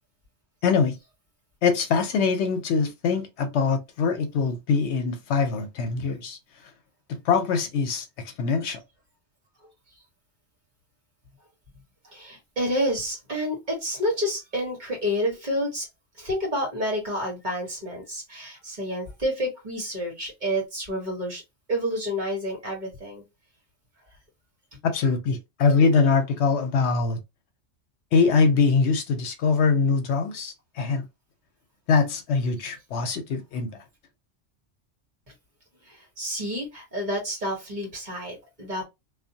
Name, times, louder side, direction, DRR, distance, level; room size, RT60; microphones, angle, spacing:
voice 1, 0.6-1.0 1.6-6.4 7.1-8.8 24.8-27.2 28.1-31.0 31.9-33.7, left 5 dB, 70° left, 0.8 m, -23 dB
voice 2, 12.1-15.9 16.2-21.4 21.7-23.2 35.8-38.8, equal, 40° right, 1.2 m, -29 dB
2.6 x 2.2 x 2.7 m
omnidirectional pair, 1.2 m